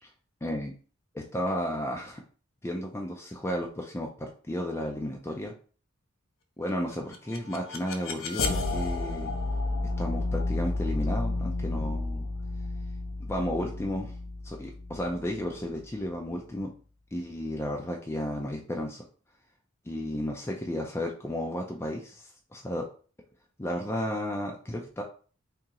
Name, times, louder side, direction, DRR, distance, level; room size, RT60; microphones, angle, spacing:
voice 1, 0.4-0.7 1.1-2.2 2.6-5.5 6.6-9.3 10.0-12.3 13.2-14.2 14.4-16.7 17.1-19.0 19.9-22.8 23.6-25.0, left 1 dB, 10° left, 1 dB, 0.4 m, -33 dB
sound 1, 6.9-15.9, left 2 dB, 75° left, 0.6 m, -32 dB
3.7 x 2.8 x 2.8 m, 0.40 s
head